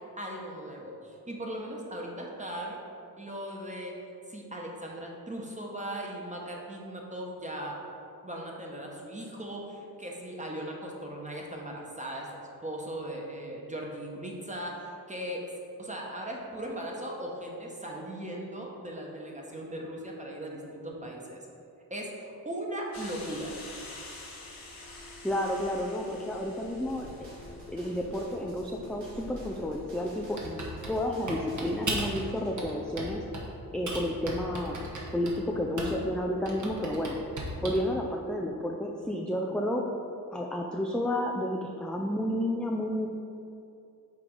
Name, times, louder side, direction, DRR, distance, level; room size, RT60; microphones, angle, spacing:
voice 1, 0.2-2.8 3.2-3.9 4.3-7.8 8.2-15.4 15.8-21.4 21.9-23.5, right 1 dB, 20° right, -1 dB, 1.2 m, -38 dB
sound 1, 22.9-30.3, left 2 dB, 60° left, 1.4 m, -46 dB
voice 2, 25.2-27.3 27.7-30.6 30.9-33.2 33.7-34.8 35.1-37.2 37.6-39.8 40.3-43.1, left 1 dB, ahead, 0 dB, 0.4 m, -31 dB
sound 2, 26.9-32.5, right 1 dB, 90° right, 1.4 m, -52 dB
Typing, 30.4-32.2 32.6-33.5 33.9-36.1 36.5-37.9, right 2 dB, 50° right, 1.3 m, -36 dB
6.0 x 3.7 x 4.7 m, 2.6 s
cardioid pair, 55°, 38 cm